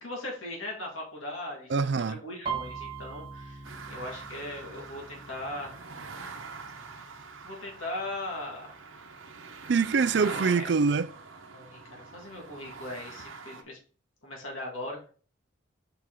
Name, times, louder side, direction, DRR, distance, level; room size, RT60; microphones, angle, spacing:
voice 1, 0.0-1.7 2.1-5.7 6.9-7.1 7.4-8.7 10.1-10.7 11.5-13.8 14.2-15.1, left 1 dB, 85° left, 2.2 m, -39 dB
voice 2, 1.7-2.2 9.7-11.1, right 5 dB, 60° right, 0.4 m, -24 dB
Piano, 2.4-6.1 6.4-6.9 7.2-7.8 8.4-8.5 8.8-9.8 10.2-10.3, right 7 dB, 25° right, 0.8 m, -40 dB
sound 1, 2.5-9.6, equal, 5° left, 0.9 m, -51 dB
sound 2, 3.6-13.6, right 4 dB, 85° right, 1.0 m, -44 dB
5.7 x 4.7 x 3.8 m
head